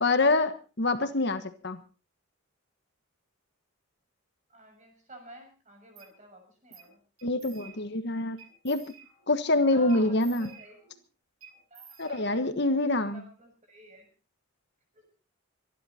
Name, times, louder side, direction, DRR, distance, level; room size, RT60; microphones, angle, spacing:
voice 1, 0.0-1.8 7.2-8.4 8.6-8.8 9.3-10.5 12.0-13.2, left 2 dB, 55° left, 9 dB, 1.4 m, -26 dB
voice 2, 4.5-7.0 9.7-10.8 11.7-14.1 14.9-15.1, equal, 35° right, 4 dB, 6.8 m, -50 dB
sound 1, 6.0-6.1 6.7-6.9 7.2-8.0 8.4-9.4 9.9-11.0 11.4-12.6, right 7 dB, 80° right, 7.8 m, -53 dB
25.0 x 11.0 x 4.3 m, 0.35 s
head